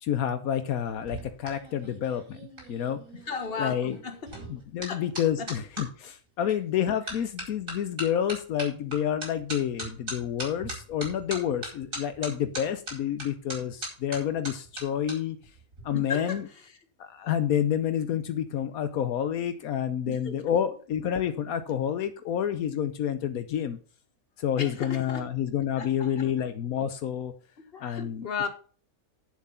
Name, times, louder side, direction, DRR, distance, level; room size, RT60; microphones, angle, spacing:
voice 1, 0.0-2.4 2.7-3.0 3.6-4.0 4.5-15.4 15.8-16.4 17.0-23.8 24.4-27.3 27.8-28.3, left 9 dB, 80° left, 1.2 m, -29 dB
sound 1, 0.9-5.9 6.5-6.8 7.1-15.1 15.4-15.8, right 1 dB, 65° right, 5.1 m, -39 dB
voice 2, 3.3-4.3 4.9-5.1 5.4-5.5 15.9-16.7 20.1-20.5 24.6-25.3 25.8-26.3 27.7-28.5, left 5 dB, 40° left, 1.7 m, -35 dB
9.1 x 7.3 x 5.5 m
omnidirectional pair, 1.5 m